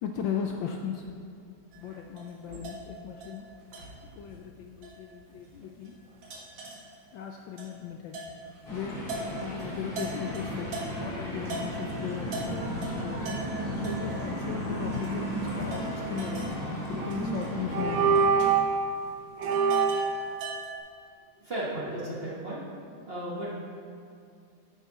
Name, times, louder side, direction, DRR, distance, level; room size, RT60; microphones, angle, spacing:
voice 1, 0.0-1.0 1.8-3.4 4.2-5.9 7.1-8.2 8.7-9.0 9.4-10.7 11.0-13.3 13.8-16.5 17.1-18.2, left 7 dB, 75° left, 3 dB, 1.1 m, -37 dB
sound 1, 1.7-11.1 11.5-20.8, right 2 dB, 60° right, 1.9 m, -42 dB
sound 2, 8.6-18.2, equal, 25° left, 2.7 m, -34 dB
sound 3, 17.0-17.3 17.7-18.8 19.4-20.2, right 5 dB, 85° right, 1.6 m, -24 dB
voice 2, 21.4-22.6 23.1-23.5, right 1 dB, 35° right, -6 dB, 1.2 m, -35 dB
9.9 x 7.4 x 4.0 m, 2.4 s
omnidirectional pair, 2.4 m